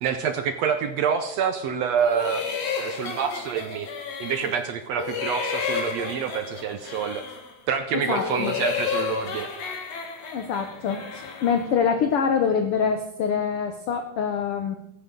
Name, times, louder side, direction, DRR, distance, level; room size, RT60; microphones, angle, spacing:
voice 1, 0.0-2.4 2.8-3.9 4.2-7.2 7.7-9.5, right 7 dB, 75° right, 8 dB, 1.6 m, -27 dB
sound 1, 2.0-4.6 4.9-7.5 7.9-11.7, left 6 dB, 55° left, 2.8 m, -31 dB
voice 2, 8.1-8.5 10.3-14.8, left 6 dB, 85° left, 7 dB, 1.2 m, -25 dB
17.5 x 14.0 x 3.7 m, 0.81 s
omnidirectional pair, 3.8 m